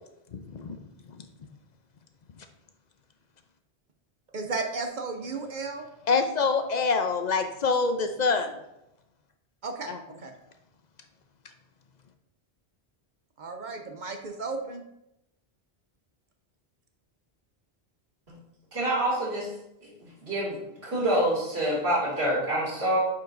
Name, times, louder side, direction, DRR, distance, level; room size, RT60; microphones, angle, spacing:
voice 1, 0.3-0.8 6.1-8.5 9.9-10.0, left 4 dB, 50° left, 7 dB, 0.6 m, -25 dB
voice 2, 4.3-5.8 9.6-10.3 13.4-14.8, right 3 dB, 55° right, 5 dB, 0.7 m, -34 dB
voice 3, 18.7-19.5 19.8-20.6 20.8-23.0, right 1 dB, 80° right, -7 dB, 2.8 m, -27 dB
9.2 x 4.7 x 2.6 m, 0.85 s
omnidirectional pair, 1.1 m